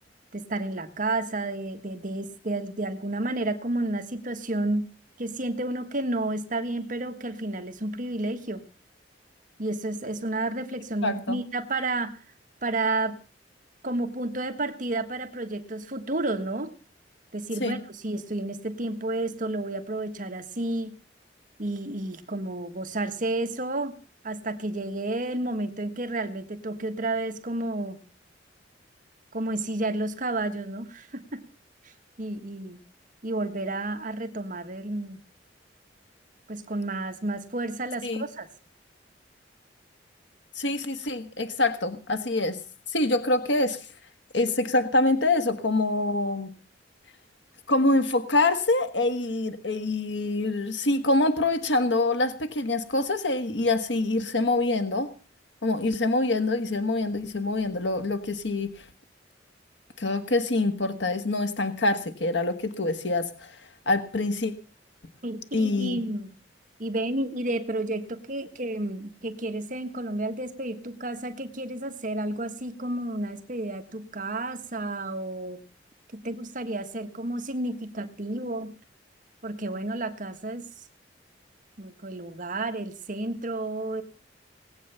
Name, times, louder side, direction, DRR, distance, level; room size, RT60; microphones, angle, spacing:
voice 1, 0.3-4.9 5.2-8.6 9.6-12.2 12.6-13.2 13.8-16.7 17.3-21.0 21.6-24.0 24.2-28.0 29.3-31.4 31.8-31.9 32.2-32.8 33.2-35.2 36.5-38.5 65.2-66.3 66.8-75.6 76.1-78.7 79.4-80.6 81.8-84.0, right 2 dB, 45° right, 8 dB, 1.4 m, -31 dB
voice 2, 11.0-11.4 17.6-17.8 38.0-38.2 40.5-42.6 42.9-43.9 44.3-46.5 47.7-55.1 55.6-58.8 60.0-63.6 63.9-64.5 65.5-66.0, left 2 dB, 90° left, 9 dB, 1.5 m, -25 dB
19.5 x 8.8 x 6.9 m, 0.38 s
head